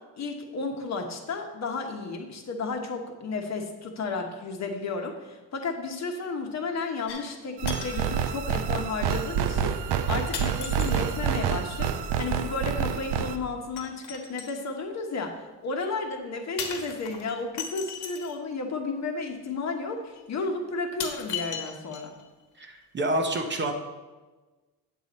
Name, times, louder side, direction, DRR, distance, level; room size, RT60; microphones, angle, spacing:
voice 1, 0.2-22.2, left 3 dB, 40° left, 4 dB, 1.1 m, -33 dB
sound 1, 7.1-7.4 7.7-8.1 9.0-9.1 10.3-11.2 13.8-14.7 16.6-18.4 19.5-19.6 20.2-20.3 21.0-22.3 22.6-22.7, left 7 dB, 75° left, 1.3 m, -37 dB
sound 2, 7.6-13.3, right 8 dB, 80° right, 0.7 m, -28 dB
voice 2, 22.6-23.7, right 1 dB, 25° right, 4 dB, 0.7 m, -28 dB
8.7 x 6.7 x 4.1 m, 1.2 s
cardioid pair, 150°, 40 cm